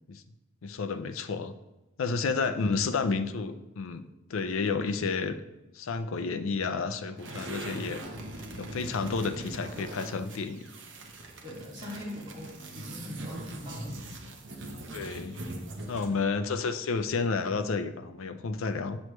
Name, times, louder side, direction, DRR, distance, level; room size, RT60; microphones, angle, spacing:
voice 1, 0.6-1.5 2.0-4.0 4.3-5.4 5.7-8.0 8.6-10.7 14.9-15.4 15.9-19.0, left 4 dB, 85° left, 10 dB, 0.5 m, -31 dB
sound 1, 7.2-16.2, right 1 dB, 65° right, 1.0 m, -41 dB
voice 2, 11.4-14.0, left 1 dB, 20° right, -6 dB, 2.2 m, -41 dB
7.7 x 6.3 x 3.1 m, 1.0 s
head